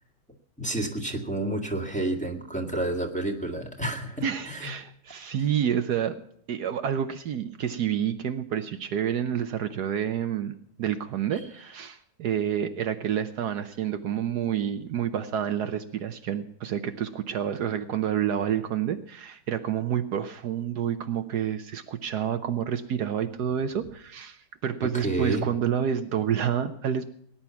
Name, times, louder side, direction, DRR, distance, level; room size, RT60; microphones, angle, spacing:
voice 1, 0.6-4.7 11.3-11.4 24.8-25.5, right 1 dB, 5° left, 1 dB, 1.9 m, -30 dB
voice 2, 4.2-6.2 6.5-10.5 10.8-27.1, right 9 dB, 70° right, 9 dB, 1.3 m, -29 dB
18.5 x 10.5 x 5.8 m, 0.66 s
omnidirectional pair, 1.9 m